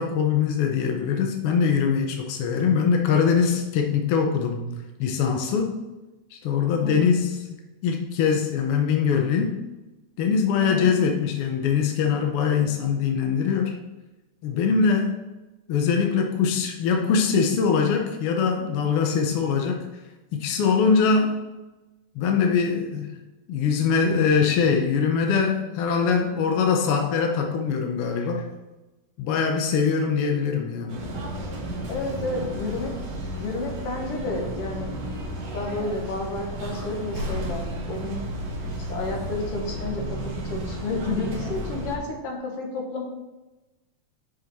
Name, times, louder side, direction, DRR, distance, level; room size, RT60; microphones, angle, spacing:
voice 1, 0.0-4.7 5.0-5.8 6.3-7.4 7.8-9.6 10.2-13.8 14.4-15.1 15.7-19.8 20.3-21.4 22.1-23.1 23.5-28.5 29.2-31.1, left 6 dB, 75° left, 3 dB, 1.3 m, -22 dB
voice 2, 6.8-7.2 10.6-10.9 31.9-32.9 33.4-34.9 35.5-38.2 38.9-43.0, left 3 dB, 55° left, 0 dB, 2.1 m, -31 dB
sound 1, 30.9-42.0, right 1 dB, 60° right, 2.2 m, -33 dB
7.6 x 5.2 x 4.1 m, 1.1 s
omnidirectional pair, 3.4 m